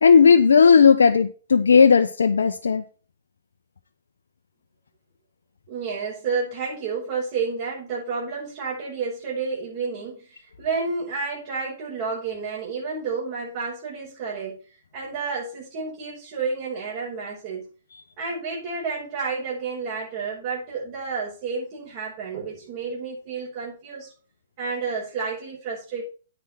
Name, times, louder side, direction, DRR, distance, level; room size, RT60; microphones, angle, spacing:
voice 1, 0.0-2.8, left 6 dB, 75° left, 0.9 m, -15 dB
voice 2, 5.7-14.6 14.9-17.7 18.2-24.1 24.6-26.1, right 4 dB, 45° right, 5.6 m, -30 dB
10.0 x 8.9 x 4.5 m
hypercardioid pair, 120°, 0 cm